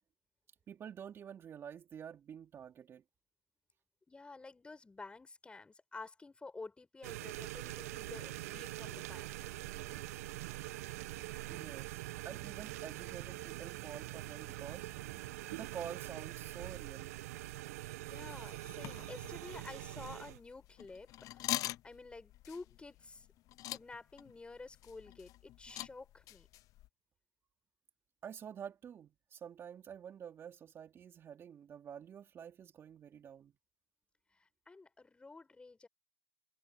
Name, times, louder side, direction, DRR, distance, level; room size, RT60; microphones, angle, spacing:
voice 1, 0.7-3.0 11.5-17.1 28.2-33.5, right 8 dB, 30° right, 3.0 m, -49 dB
voice 2, 4.1-9.3 9.8-10.1 18.0-23.3 23.7-26.5 34.3-35.9, left 3 dB, 10° left, 6.8 m, -51 dB
sound 1, 7.0-20.4, right 17 dB, 75° right, 1.2 m, -44 dB
sound 2, 9.1-15.9, right 17 dB, 50° right, 4.8 m, -56 dB
sound 3, 18.1-26.9, left 15 dB, 45° left, 0.7 m, -45 dB
hypercardioid pair, 110°, 8 cm